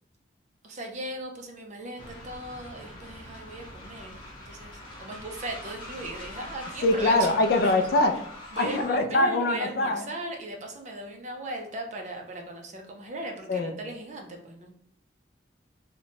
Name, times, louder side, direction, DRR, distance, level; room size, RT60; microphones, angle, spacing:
voice 1, 0.6-7.3 7.6-7.7 8.5-14.7, right 1 dB, 40° right, 3 dB, 0.4 m, -38 dB
Train, 2.0-9.0, left 1 dB, 25° left, 0.7 m, -43 dB
voice 2, 6.8-8.1 8.6-10.0 13.5-13.7, left 2 dB, 55° left, 5 dB, 0.3 m, -23 dB
2.8 x 2.1 x 2.8 m, 0.71 s
head